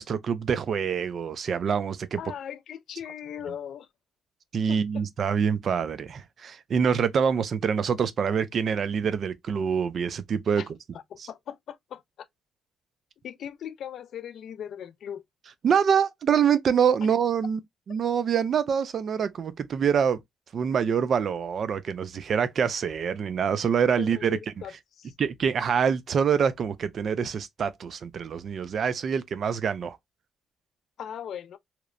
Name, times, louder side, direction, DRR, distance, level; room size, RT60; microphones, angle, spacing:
voice 1, 0.0-2.2 4.5-10.6 11.2-11.3 15.6-17.6 17.9-20.2 20.5-24.4 25.2-30.0, right 7 dB, 55° right, 0.3 m, -25 dB
voice 2, 2.2-3.9 4.7-5.0 10.6-10.7 10.9-12.3 13.2-15.2 17.0-17.1 24.0-24.7 25.0-25.1 31.0-31.6, left 9 dB, 65° left, 0.3 m, -39 dB
2.9 x 2.0 x 2.4 m
cardioid pair, 90°, 0 cm